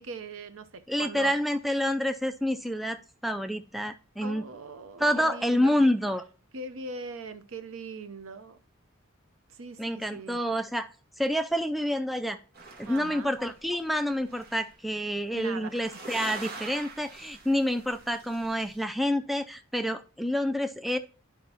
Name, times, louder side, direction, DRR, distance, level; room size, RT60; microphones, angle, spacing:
voice 1, 0.0-1.3 4.2-5.7 6.5-8.6 9.5-10.4 12.9-13.3 15.3-15.9, right 3 dB, 75° right, 0.8 m, -40 dB
voice 2, 0.9-4.4 5.0-6.2 9.8-10.9 11.2-12.4 12.8-21.0, equal, ahead, 0.3 m, -28 dB
sound 1, 12.5-14.7 15.7-18.8, right 3 dB, 50° right, 1.5 m, -45 dB
11.5 x 5.0 x 2.9 m
head